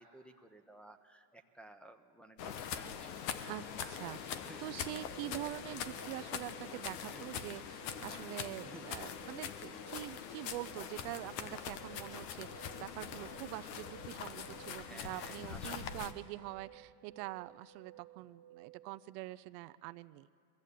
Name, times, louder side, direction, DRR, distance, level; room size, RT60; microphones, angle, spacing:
voice 1, 0.0-3.4 3.8-4.0 4.4-4.6 7.1-7.3 8.6-9.0 14.8-15.9, right 1 dB, ahead, 2 dB, 0.9 m, -55 dB
sound 1, 2.4-16.1, left 8 dB, 80° left, 1.3 m, -43 dB
voice 2, 3.4-20.3, right 18 dB, 75° right, 13 dB, 0.7 m, -45 dB
sound 2, 5.1-18.9, right 13 dB, 50° right, 1.4 m, -57 dB
22.0 x 14.0 x 8.4 m, 2.5 s
supercardioid pair, 120°, 49 cm